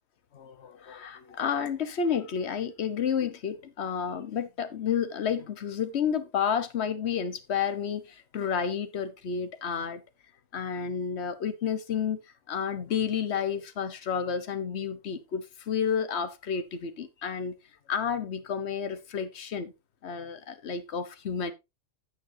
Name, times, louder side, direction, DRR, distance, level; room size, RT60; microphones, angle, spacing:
voice 1, 0.3-10.0 10.5-12.2 12.5-17.6 17.9-19.7 20.0-21.5, left 7 dB, 65° left, 1.3 m, -31 dB
16.0 x 5.6 x 2.7 m
omnidirectional pair, 1.2 m